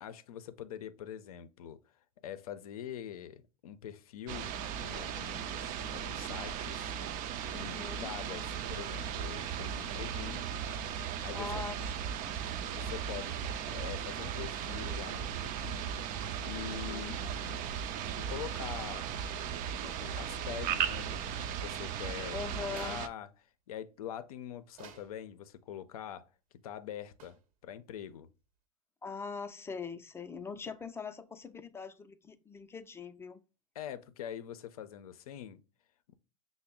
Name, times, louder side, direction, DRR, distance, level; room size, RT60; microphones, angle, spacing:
voice 1, 0.0-1.8 2.2-6.9 7.4-10.4 11.2-11.5 12.7-13.3 13.7-15.9 16.4-17.6 18.1-19.1 19.8-23.3 23.7-26.3 26.6-28.3 33.8-35.6 36.1-36.2, left 10 dB, 80° left, 0.5 m, -44 dB
sound 1, 4.3-23.1, right 8 dB, 45° right, 0.4 m, -37 dB
voice 2, 7.5-8.2 11.3-11.9 12.3-12.4 16.7-17.2 22.3-23.0 29.0-33.4, left 5 dB, 15° left, 0.4 m, -42 dB
sound 2, 22.7-23.1 24.7-25.2 27.2-27.5, right 7 dB, 70° right, 1.0 m, -53 dB
5.8 x 2.0 x 3.6 m
hypercardioid pair, 95°, 19 cm